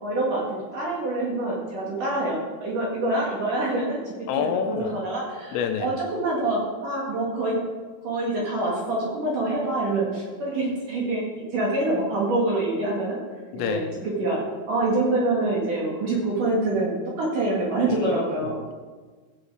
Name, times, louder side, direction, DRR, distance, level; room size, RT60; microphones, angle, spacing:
voice 1, 0.0-7.6 8.0-11.2 11.5-13.2 13.5-14.4 14.7-18.6, right 2 dB, 55° right, -4 dB, 2.8 m, -26 dB
voice 2, 4.3-4.9 5.5-6.0 13.5-13.9 18.0-18.7, left 8 dB, 85° left, 6 dB, 3.4 m, -28 dB
16.0 x 7.7 x 4.8 m, 1.4 s
omnidirectional pair, 5.9 m